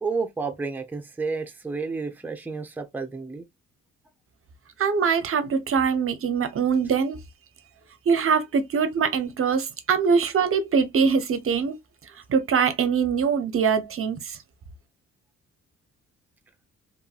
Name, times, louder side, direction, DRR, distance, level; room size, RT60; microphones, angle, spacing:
voice 1, 0.0-3.5, right 4 dB, 5° right, 0.6 m, -31 dB
voice 2, 4.8-7.2 8.1-11.7 12.3-14.4, right 6 dB, 45° right, 0.6 m, -23 dB
2.9 x 2.5 x 2.4 m
cardioid pair, 90°, 30 cm